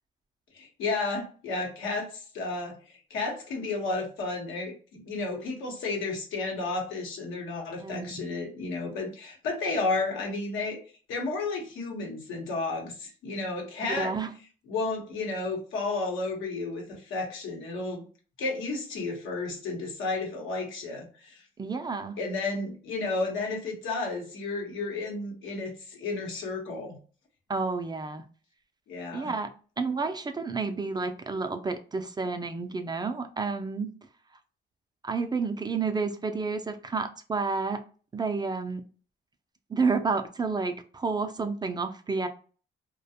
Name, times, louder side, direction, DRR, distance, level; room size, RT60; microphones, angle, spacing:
voice 1, 0.5-10.8 11.1-14.1 14.7-18.0 18.4-21.4 22.2-27.0 28.9-29.3, left 3 dB, 90° left, 1 dB, 0.9 m, -32 dB
voice 2, 7.8-8.3 13.8-14.3 21.6-22.2 27.5-28.2 29.1-33.9 35.0-37.8 38.1-38.8 39.7-42.3, right 4 dB, 20° right, 7 dB, 0.3 m, -30 dB
2.3 x 2.2 x 2.7 m, 0.39 s
cardioid pair, 90°, 20 cm